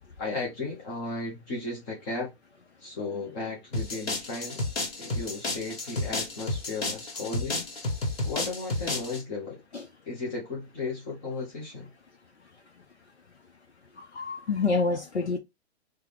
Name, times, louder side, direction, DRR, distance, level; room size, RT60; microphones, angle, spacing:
voice 1, 0.2-2.3 2.8-4.6 5.0-7.6 8.2-9.6 10.1-11.9, left 3 dB, 10° left, 0.4 m, -35 dB
sound 1, 3.7-9.2, left 2 dB, 60° left, 1.3 m, -32 dB
voice 2, 14.0-15.4, left 4 dB, 85° left, 0.5 m, -27 dB
4.5 x 2.0 x 3.1 m
figure-of-eight pair, 115°, 33 cm